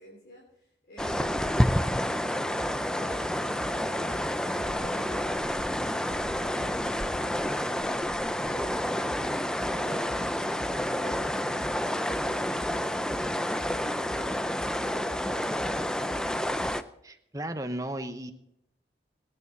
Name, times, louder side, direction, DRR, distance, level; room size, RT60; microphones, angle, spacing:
voice 1, 0.0-13.4 13.8-16.5, equal, 70° left, -4 dB, 3.4 m, -50 dB
sound 1, 1.0-16.8, left 1 dB, 5° left, 0.4 m, -29 dB
sound 2, 2.6-7.8 8.6-16.7, left 1 dB, 45° left, 4.8 m, -46 dB
voice 2, 17.0-18.3, right 1 dB, 20° right, 8 dB, 0.9 m, -35 dB
20.5 x 10.0 x 4.1 m, 0.76 s
head